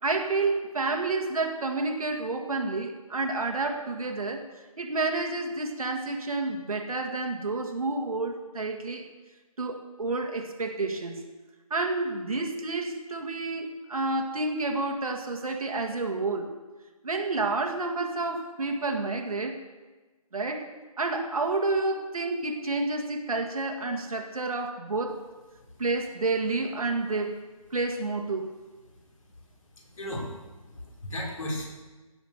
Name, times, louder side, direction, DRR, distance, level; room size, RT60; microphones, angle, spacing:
voice 1, 0.0-4.5 4.8-9.1 9.6-11.2 11.7-16.5 17.0-19.6 20.3-20.7 21.0-25.2 25.8-27.4 27.7-28.5, right 3 dB, 70° right, 4 dB, 2.0 m, -29 dB
voice 2, 29.8-30.4 30.7-31.7, left 1 dB, 60° left, -1 dB, 4.6 m, -35 dB
17.0 x 7.3 x 6.6 m, 1.3 s
figure-of-eight pair, 165°, 19 cm